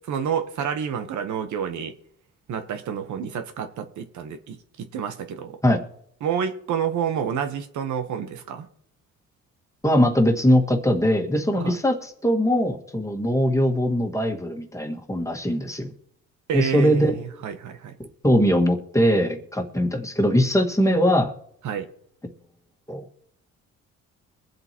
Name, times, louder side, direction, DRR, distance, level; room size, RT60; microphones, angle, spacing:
voice 1, 0.1-2.0 2.5-5.6 6.2-8.7 11.5-11.7 16.5-17.9 21.6-21.9, right 8 dB, 75° right, 1.2 m, -29 dB
voice 2, 9.8-15.9 16.5-17.2 18.2-21.3 22.9-23.0, equal, 10° left, 1.8 m, -21 dB
23.0 x 7.8 x 3.0 m
cardioid pair, 90°, 30 cm